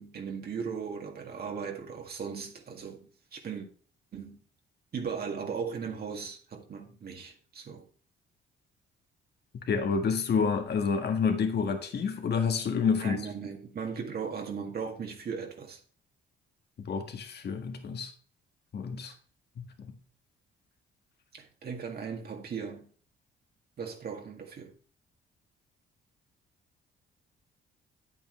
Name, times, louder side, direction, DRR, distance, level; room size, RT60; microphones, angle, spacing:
voice 1, 0.0-3.7 4.1-4.4 4.9-7.8 13.0-15.8 21.3-22.9 23.8-24.7, right 6 dB, 50° right, 1.9 m, -37 dB
voice 2, 9.7-13.2 16.8-18.1 18.7-19.1 19.6-19.9, left 5 dB, 55° left, 1.7 m, -29 dB
9.0 x 8.3 x 3.2 m
cardioid pair, 90°, 20 cm